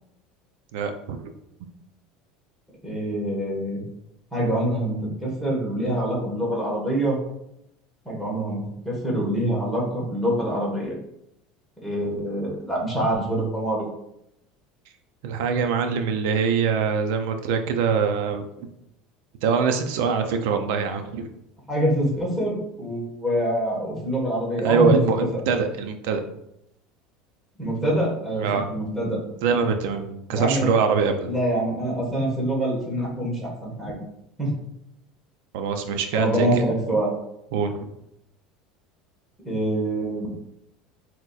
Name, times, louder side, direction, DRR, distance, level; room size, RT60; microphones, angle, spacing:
voice 1, 0.7-1.3 15.2-18.7 19.4-21.3 24.6-26.2 28.4-28.7 29.4-31.3 35.5-36.5 37.5-37.9, right 5 dB, 75° right, 6 dB, 0.5 m, -23 dB
voice 2, 2.8-3.8 4.3-7.2 8.0-11.0 11.8-13.8 21.7-25.0 27.6-29.2 30.3-30.7 31.3-34.0 34.4-34.5 36.1-37.1 39.4-40.3, right 1 dB, ahead, -5 dB, 1.4 m, -25 dB
6.0 x 2.9 x 2.4 m, 0.79 s
cardioid pair, 160°, 0 cm